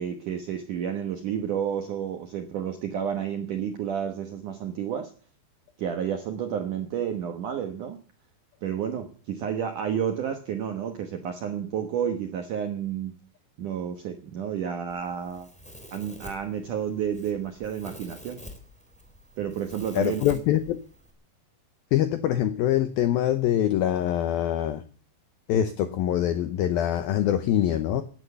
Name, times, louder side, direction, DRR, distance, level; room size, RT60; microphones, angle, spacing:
voice 1, 0.0-5.1 5.8-8.0 8.6-13.2 13.6-15.5 15.9-18.4 19.4-20.2, right 8 dB, 75° right, 1.9 m, -31 dB
Domestic sounds home sounds, 14.9-21.1, left 1 dB, ahead, 2.3 m, -47 dB
voice 2, 19.9-20.8 21.9-24.8 25.5-28.0, left 11 dB, 85° left, 2.1 m, -24 dB
17.5 x 11.0 x 6.9 m
omnidirectional pair, 5.5 m